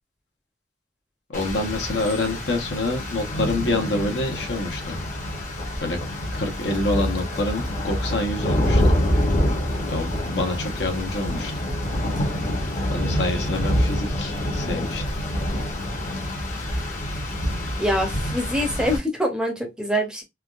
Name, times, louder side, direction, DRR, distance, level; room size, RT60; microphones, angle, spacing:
voice 1, 1.3-5.0 5.8-6.0 6.3-8.8 9.9-11.5 12.9-15.0, left 2 dB, 80° left, 0.9 m, -27 dB
Rain, 1.3-19.0, equal, 45° left, 0.9 m, -26 dB
voice 2, 17.8-20.2, equal, 5° right, 0.6 m, -24 dB
3.4 x 2.3 x 2.4 m
head